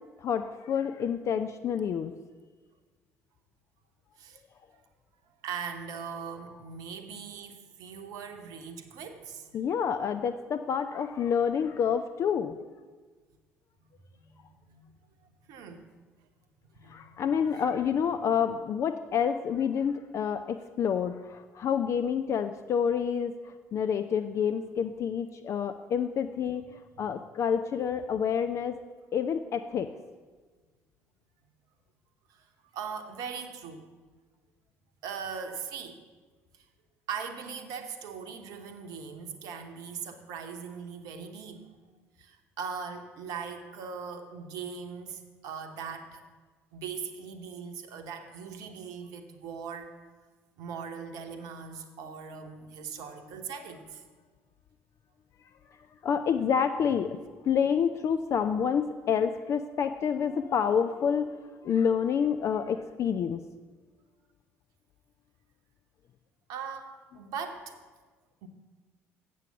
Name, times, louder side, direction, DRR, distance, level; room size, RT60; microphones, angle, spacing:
voice 1, 0.2-2.1 9.5-12.6 16.9-28.8 29.1-29.9 52.5-52.7 56.0-63.4, left 7 dB, 40° left, 9 dB, 0.4 m, -28 dB
voice 2, 5.4-9.6 14.1-14.9 15.2-15.8 16.7-17.2 17.5-17.6 32.3-32.5 32.7-33.9 35.0-36.0 36.5-36.7 37.1-41.6 42.2-46.2 46.7-49.9 50.6-54.0 66.5-67.8 68.4-68.5, right 6 dB, 60° right, 6 dB, 0.9 m, -40 dB
7.7 x 7.5 x 7.0 m, 1.4 s
figure-of-eight pair, 50°, 7 cm